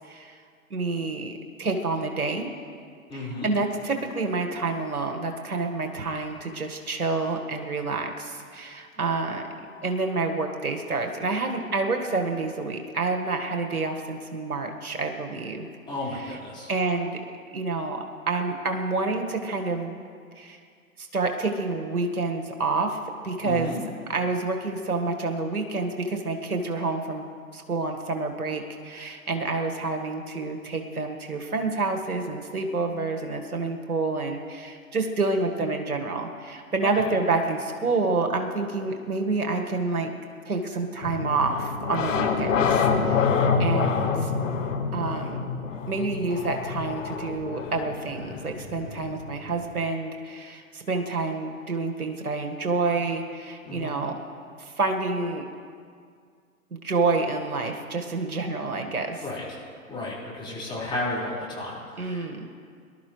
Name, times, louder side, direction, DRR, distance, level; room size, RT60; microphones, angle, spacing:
voice 1, 0.7-2.5 3.1-9.4 9.8-15.7 16.1-16.4 16.7-17.2 17.5-20.0 20.4-20.6 21.0-23.0 23.2-23.7 24.1-27.2 27.5-40.1 40.5-43.3 43.6-44.3 44.9-45.5 45.9-54.1 54.6-55.5 56.7-59.2 62.0-62.5, right 3 dB, 90° right, 4 dB, 1.7 m, -28 dB
voice 2, 3.1-3.5 15.9-16.7 23.4-23.8 36.8-37.1 53.6-54.0 59.2-59.4 59.9-62.3, left 2 dB, 10° left, -7 dB, 4.6 m, -33 dB
sound 1, 41.0-49.8, left 5 dB, 60° left, 1.6 m, -27 dB
24.0 x 12.5 x 3.2 m, 2.2 s
hypercardioid pair, 125°, 43 cm